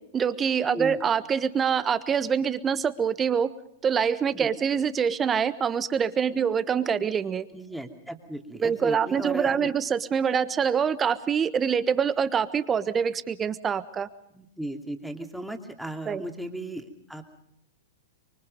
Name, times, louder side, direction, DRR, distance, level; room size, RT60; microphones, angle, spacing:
voice 1, 0.1-3.5 3.8-7.5 8.6-14.1 16.1-16.2, right 7 dB, 20° right, 14 dB, 1.3 m, -25 dB
voice 2, 7.5-9.7 14.3-17.4, right 1 dB, ahead, 4 dB, 2.7 m, -36 dB
25.5 x 24.0 x 5.4 m, 0.74 s
hypercardioid pair, 105°, 0 cm